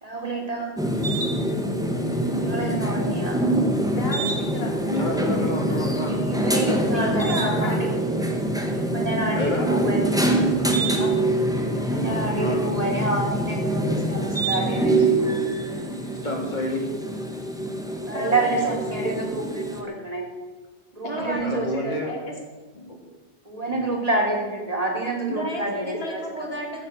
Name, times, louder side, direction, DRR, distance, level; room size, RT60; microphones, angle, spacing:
voice 1, 0.0-0.7 2.4-3.4 6.1-8.4 8.7-11.1 11.9-15.4 18.1-20.3 20.9-21.7 22.0-22.1 23.5-26.5, right 2 dB, 30° right, -1 dB, 3.5 m, -28 dB
sound 1, 0.8-19.8, right 1 dB, 5° right, 1.6 m, -24 dB
voice 2, 3.9-4.7 6.9-7.8 18.1-19.0 21.0-22.3 25.3-26.9, equal, 55° left, 0 dB, 3.2 m, -32 dB
voice 3, 4.9-6.2 9.4-9.7 12.4-12.6 16.2-16.9 21.1-22.1 22.7-23.0, left 1 dB, 40° left, 1 dB, 2.9 m, -29 dB
15.0 x 8.1 x 8.6 m, 1.3 s
omnidirectional pair, 1.2 m